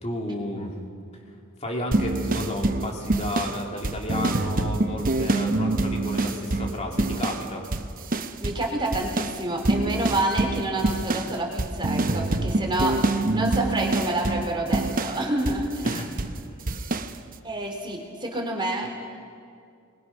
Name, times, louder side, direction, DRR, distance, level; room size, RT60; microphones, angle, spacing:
voice 1, 0.0-0.7 1.6-7.6 15.8-16.1, left 1 dB, 30° left, 0 dB, 3.1 m, -32 dB
sound 1, 1.9-7.5 7.7-8.7 8.9-16.4 16.7-17.1, right 2 dB, 40° right, 0.8 m, -26 dB
voice 2, 8.4-16.0 17.4-19.0, right 1 dB, 20° right, 1 dB, 3.4 m, -28 dB
26.5 x 21.5 x 6.0 m, 2.4 s
head